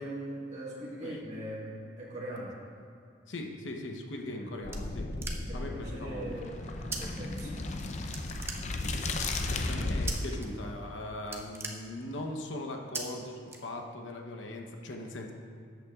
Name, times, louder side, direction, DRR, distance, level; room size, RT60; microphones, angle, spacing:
voice 1, 0.0-2.6 4.4-4.6 5.5-7.6, right 1 dB, 35° right, -6 dB, 1.6 m, -40 dB
voice 2, 3.3-5.1 5.5-6.5 9.4-15.3, left 1 dB, 85° left, 2 dB, 0.9 m, -40 dB
sound 1, 4.2-5.7 6.9-7.0 7.3-7.8 8.1-9.1 10.1-10.5 10.8-10.9 11.2-12.4 12.9-13.0 13.5-14.1, right 3 dB, 15° right, 0.6 m, -40 dB
sound 2, 4.6-10.3, left 2 dB, 40° left, 0.5 m, -35 dB
sound 3, 5.7-11.1, right 2 dB, 60° right, 0.5 m, -53 dB
13.0 x 8.3 x 2.4 m, 2.4 s
head